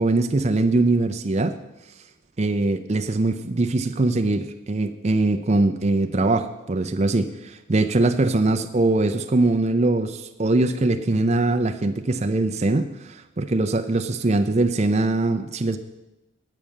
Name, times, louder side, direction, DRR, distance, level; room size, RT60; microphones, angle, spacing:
voice 1, 0.0-1.5 2.4-15.8, right 2 dB, 30° right, 7 dB, 0.5 m, -22 dB
8.9 x 8.6 x 6.4 m, 0.96 s
head